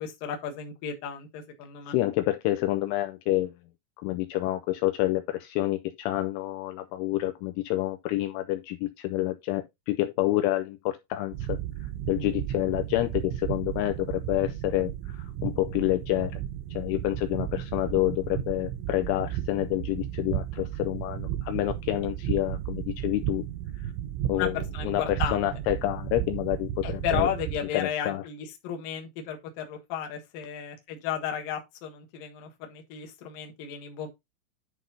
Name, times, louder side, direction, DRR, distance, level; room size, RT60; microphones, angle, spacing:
voice 1, 0.0-1.9 24.3-25.4 26.8-34.1, left 9 dB, 60° left, 2.4 m, -34 dB
voice 2, 1.9-3.5 4.0-16.4 16.7-23.4 23.8-23.9 24.3-27.3 27.7-28.2, left 16 dB, 85° left, 2.9 m, -28 dB
sound 1, 11.3-27.6, right 12 dB, 85° right, 3.0 m, -34 dB
10.5 x 4.0 x 4.0 m
omnidirectional pair, 6.0 m